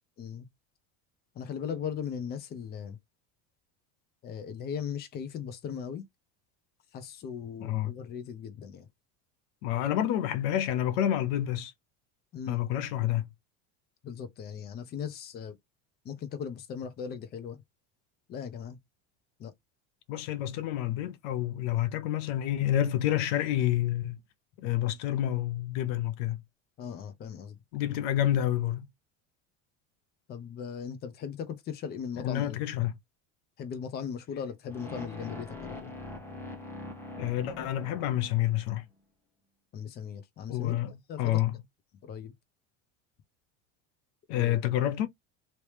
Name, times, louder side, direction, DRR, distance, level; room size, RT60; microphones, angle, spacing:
voice 1, 0.2-0.5 1.3-3.0 4.2-6.0 6.9-8.9 12.3-12.6 14.0-15.6 16.0-17.6 18.3-18.8 19.4-19.5 26.8-27.6 30.3-32.6 33.6-35.9 39.7-40.8 41.1-41.4 42.0-42.3 44.3-44.6, left 7 dB, 30° left, 0.7 m, -38 dB
voice 2, 7.6-7.9 9.6-11.7 12.5-13.2 20.1-24.2 24.6-26.4 27.7-28.9 32.2-32.9 37.2-38.8 40.5-41.5 44.3-45.1, left 12 dB, 70° left, 0.7 m, -28 dB
sound 1, 34.7-38.8, left 2 dB, 5° left, 0.9 m, -43 dB
3.1 x 2.8 x 3.3 m
cardioid pair, 160°, 34 cm